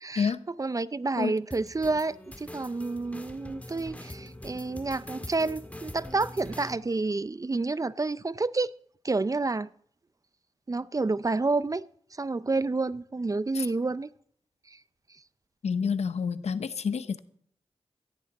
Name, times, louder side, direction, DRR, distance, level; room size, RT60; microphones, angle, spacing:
voice 1, 0.0-0.3 0.6-8.7 9.0-9.7 10.7-11.9 12.2-14.1 14.7-14.8, right 3 dB, 30° right, 0.5 m, -29 dB
sound 1, 1.5-6.8, left 1 dB, 15° left, 1.8 m, -43 dB
voice 2, 15.6-17.2, left 6 dB, 80° left, 0.8 m, -28 dB
16.0 x 14.5 x 4.1 m
cardioid pair, 50°, 11 cm